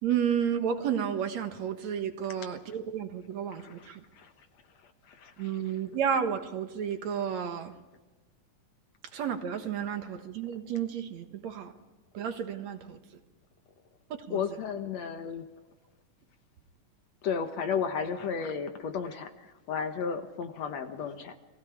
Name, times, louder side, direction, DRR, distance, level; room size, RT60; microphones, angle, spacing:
voice 1, 0.0-4.0 5.4-7.7 9.1-11.7 12.1-13.0 14.3-14.4, right 8 dB, 65° right, 2.5 m, -31 dB
voice 2, 3.6-3.9 4.2-4.3 5.1-5.6 14.3-15.5 17.2-21.4, left 6 dB, 65° left, 2.2 m, -33 dB
30.0 x 20.5 x 4.7 m
omnidirectional pair, 3.7 m